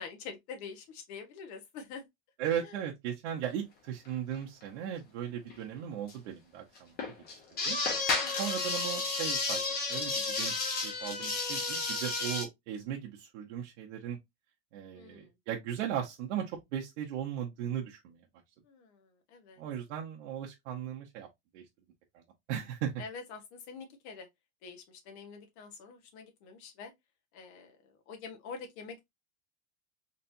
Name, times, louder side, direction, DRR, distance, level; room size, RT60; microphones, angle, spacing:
voice 1, 0.0-2.0 2.6-2.8 8.2-8.3 14.9-15.3 18.6-19.6 23.0-24.3 24.6-26.9 27.3-29.0, left 5 dB, 50° left, 1.3 m, -46 dB
voice 2, 2.4-7.1 7.6-7.8 8.4-9.6 9.9-10.5 10.8-14.2 14.7-18.2 19.6-21.3 21.5-21.6 22.5-22.9, right 9 dB, 75° right, 1.0 m, -37 dB
sound 1, 4.3-4.4 4.7-4.8 5.5-5.6 6.1-6.2 6.8-12.4, left 3 dB, 25° left, 1.2 m, -32 dB
4.2 x 3.2 x 2.6 m
supercardioid pair, 170°, 36 cm